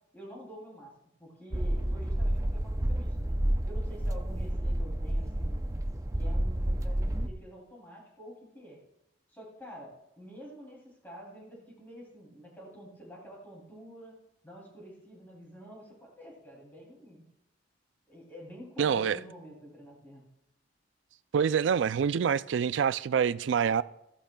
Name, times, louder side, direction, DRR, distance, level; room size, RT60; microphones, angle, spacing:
voice 1, 0.1-0.9 1.2-3.4 3.6-5.7 6.2-8.8 9.3-14.2 14.4-17.2 18.1-20.3, equal, 10° left, 2.9 m, -48 dB
sound 1, 1.5-7.3, right 1 dB, 15° right, 0.5 m, -30 dB
voice 2, 18.8-19.2 21.3-23.8, right 7 dB, 75° right, 0.3 m, -26 dB
14.5 x 14.5 x 2.3 m
head